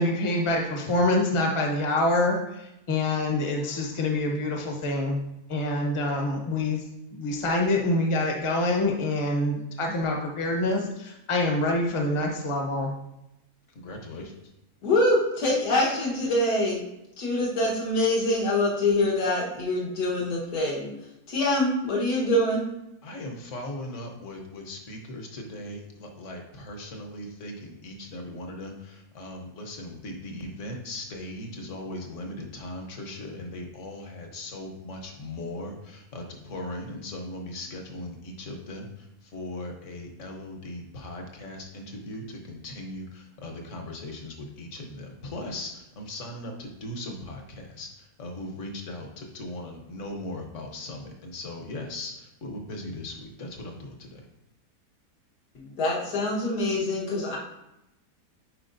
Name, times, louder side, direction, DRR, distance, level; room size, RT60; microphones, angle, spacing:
voice 1, 0.0-5.2 5.5-6.8 7.1-12.9, left 2 dB, 25° left, 0 dB, 0.7 m, -26 dB
voice 2, 13.7-14.4 23.0-54.3, left 1 dB, 55° left, 2 dB, 1.2 m, -38 dB
voice 3, 14.8-16.8 17.2-20.9 21.3-22.7 55.6-57.4, left 1 dB, 75° left, -4 dB, 1.9 m, -25 dB
9.4 x 4.7 x 2.6 m, 0.87 s
omnidirectional pair, 1.7 m